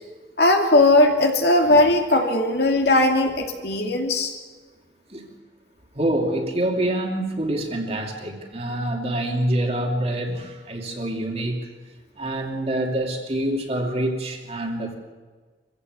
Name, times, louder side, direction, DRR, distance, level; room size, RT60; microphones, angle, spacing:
voice 1, 0.4-4.3, left 2 dB, 65° left, 3 dB, 2.7 m, -18 dB
voice 2, 5.9-11.7 12.2-14.9, right 1 dB, 35° right, 2 dB, 2.8 m, -26 dB
24.5 x 15.5 x 8.1 m, 1.4 s
head